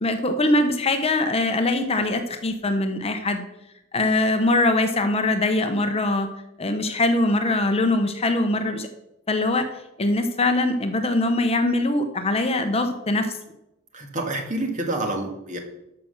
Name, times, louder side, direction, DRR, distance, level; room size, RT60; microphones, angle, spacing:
voice 1, 0.0-3.5 3.9-6.3 6.6-8.9 9.3-9.7 10.0-13.3, left 2 dB, 30° left, 7 dB, 0.8 m, -22 dB
voice 2, 13.9-15.6, right 2 dB, 35° right, 3 dB, 1.9 m, -28 dB
12.5 x 5.8 x 6.5 m, 0.89 s
head